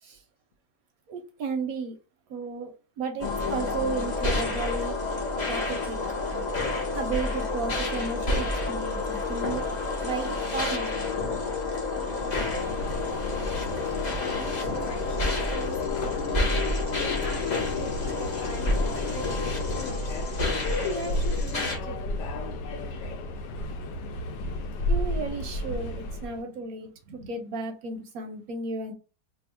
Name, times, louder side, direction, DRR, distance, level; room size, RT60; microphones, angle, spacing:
voice 1, 1.1-2.0 2.3-5.0 5.5-6.0 6.9-9.7 10.0-10.9 24.9-28.9, right 4 dB, 70° right, 5 dB, 0.9 m, -34 dB
sound 1, 3.2-21.8, left 3 dB, 40° left, 0.7 m, -29 dB
Subway metro underground, 12.0-26.4, left 1 dB, 80° left, 1.2 m, -33 dB
voice 2, 14.2-22.0, left 2 dB, 55° left, 2 dB, 1.0 m, -40 dB
2.8 x 2.5 x 4.2 m, 0.35 s
omnidirectional pair, 1.9 m